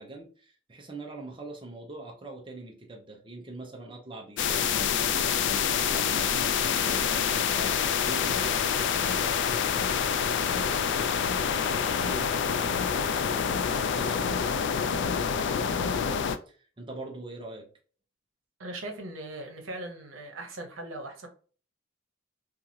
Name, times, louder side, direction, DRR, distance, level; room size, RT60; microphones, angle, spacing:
voice 1, 0.0-7.2 7.5-16.2 16.5-17.7, right 2 dB, 25° right, 0 dB, 0.6 m, -43 dB
sound 1, 4.4-16.4, left 7 dB, 65° left, 0.3 m, -27 dB
voice 2, 18.6-21.3, right 2 dB, 85° right, 4 dB, 0.8 m, -39 dB
2.8 x 2.4 x 2.6 m, 0.39 s
head